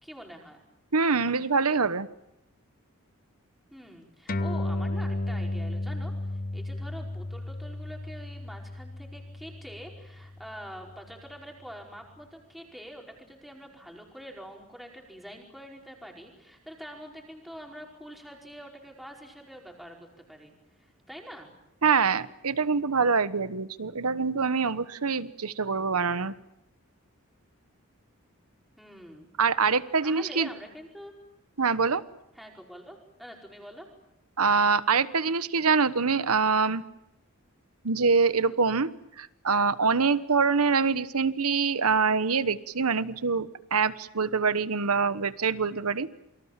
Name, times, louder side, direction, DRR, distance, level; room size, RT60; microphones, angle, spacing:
voice 1, 0.0-0.6 3.7-20.0 20.3-20.5 20.8-21.5 28.8-29.3 30.0-31.1 32.3-33.9, equal, ahead, 0 dB, 4.9 m, -45 dB
voice 2, 0.9-2.1 21.8-26.3 29.4-30.5 31.6-32.0 34.4-36.8 37.8-38.9 39.2-46.1, right 5 dB, 85° right, 14 dB, 1.2 m, -25 dB
sound 1, 4.3-11.1, left 1 dB, 40° left, 0.9 m, -34 dB
28.5 x 25.0 x 7.4 m, 0.85 s
head